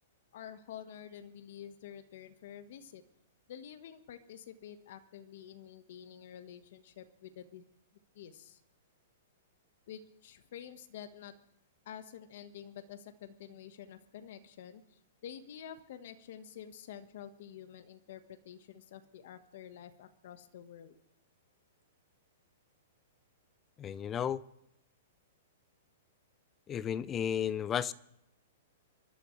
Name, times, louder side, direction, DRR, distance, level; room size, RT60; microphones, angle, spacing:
voice 1, 0.3-3.0 3.5-7.6 8.1-8.6 9.9-11.3 11.8-20.9, left 9 dB, 60° left, 1.4 m, -49 dB
voice 2, 23.8-24.4 26.7-27.9, left 9 dB, 20° left, 0.5 m, -33 dB
27.5 x 12.0 x 3.3 m
hypercardioid pair, 150°, 0 cm